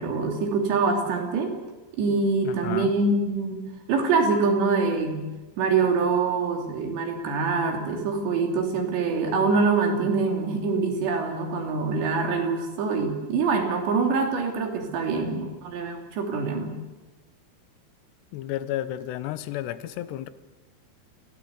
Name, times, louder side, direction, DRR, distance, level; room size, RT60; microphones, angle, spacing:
voice 1, 0.0-1.6 2.0-5.3 5.6-16.8, right 4 dB, 75° right, 3 dB, 5.0 m, -25 dB
voice 2, 2.4-3.0 18.3-20.3, left 13 dB, 80° left, 13 dB, 3.0 m, -32 dB
27.5 x 16.5 x 8.1 m, 1.2 s
omnidirectional pair, 5.1 m